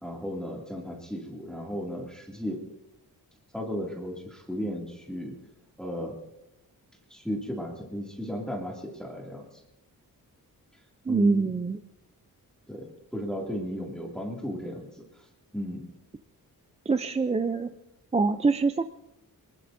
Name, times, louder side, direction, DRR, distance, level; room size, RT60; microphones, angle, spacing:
voice 1, 0.0-2.6 3.5-5.3 5.8-6.2 7.1-9.5 11.1-11.5 12.7-12.9 13.1-14.9 15.2-15.3 15.5-15.8, equal, ahead, -2 dB, 2.5 m, -34 dB
voice 2, 11.1-11.8 16.9-17.7 18.1-18.8, right 4 dB, 20° right, 9 dB, 0.5 m, -24 dB
26.0 x 20.0 x 2.7 m, 0.89 s
wide cardioid pair, 165°, 36 cm